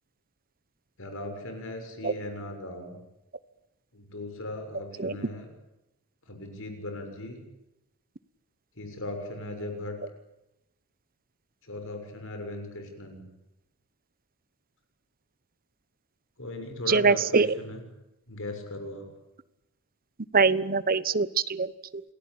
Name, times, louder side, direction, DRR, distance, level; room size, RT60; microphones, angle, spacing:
voice 1, 1.0-3.0 3.9-5.5 6.3-7.4 8.8-10.0 11.6-13.3 16.4-17.8 18.3-19.1, left 1 dB, 60° left, 5 dB, 6.7 m, -38 dB
voice 2, 16.9-17.5 20.3-22.0, right 4 dB, 40° right, 15 dB, 1.1 m, -23 dB
28.5 x 19.0 x 8.8 m, 0.92 s
head